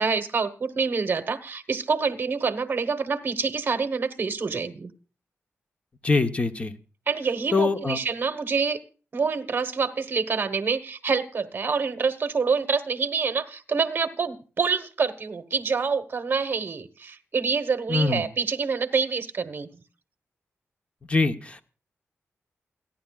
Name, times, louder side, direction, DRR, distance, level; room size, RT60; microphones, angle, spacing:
voice 1, 0.0-4.9 7.1-8.8 9.1-19.7, right 5 dB, 45° right, 1.2 m, -26 dB
voice 2, 6.0-6.8 7.5-8.0 17.9-18.2 21.1-21.6, left 3 dB, 25° left, 1.0 m, -23 dB
28.5 x 10.5 x 2.4 m
wide cardioid pair, 180°, 5 cm